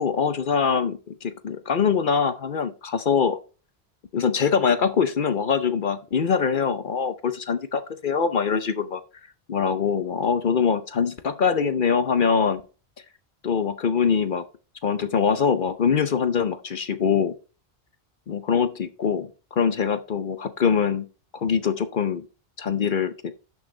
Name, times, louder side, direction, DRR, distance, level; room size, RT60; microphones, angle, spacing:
voice 1, 0.0-3.4 4.1-9.0 9.5-12.6 13.4-14.4 14.8-17.3 18.3-21.1 21.3-22.2 22.6-23.3, left 6 dB, 55° left, 11 dB, 0.8 m, -23 dB
11.5 x 6.3 x 3.3 m, 0.34 s
omnidirectional pair, 1.1 m